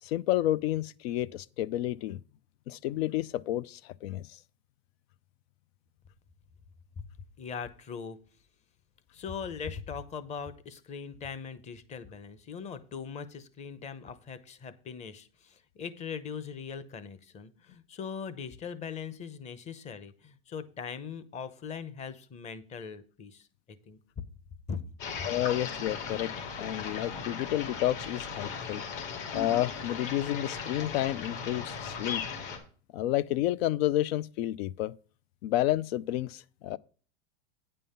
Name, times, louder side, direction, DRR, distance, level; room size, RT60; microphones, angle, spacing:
voice 1, 0.0-2.2 2.7-4.3 25.2-26.3 26.6-28.8 29.3-32.2 32.9-34.9 35.4-36.8, left 14 dB, 85° left, 0.6 m, -30 dB
voice 2, 7.4-8.2 9.1-24.2 24.7-24.8 25.2-25.3, left 6 dB, 20° left, 0.8 m, -40 dB
sound 1, 25.0-32.6, left 5 dB, 60° left, 2.8 m, -37 dB
9.4 x 5.5 x 5.5 m
supercardioid pair, 160°, 30 cm